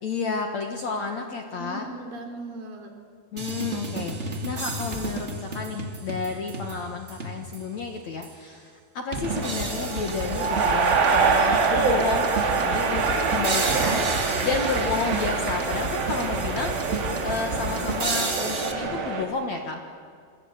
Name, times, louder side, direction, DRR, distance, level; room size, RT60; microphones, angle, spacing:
voice 1, 0.0-1.9 3.3-12.3 12.7-19.8, left 4 dB, 55° left, 4 dB, 2.2 m, -31 dB
voice 2, 1.6-2.9 12.4-12.8, right 2 dB, 55° right, 3 dB, 4.6 m, -38 dB
sound 1, 3.4-7.8 8.2-8.3 9.1-18.7, right 2 dB, 30° right, 1.2 m, -32 dB
sound 2, 9.2-19.2, right 4 dB, 85° right, 4.8 m, -25 dB
29.0 x 24.0 x 8.2 m, 2.1 s
omnidirectional pair, 4.8 m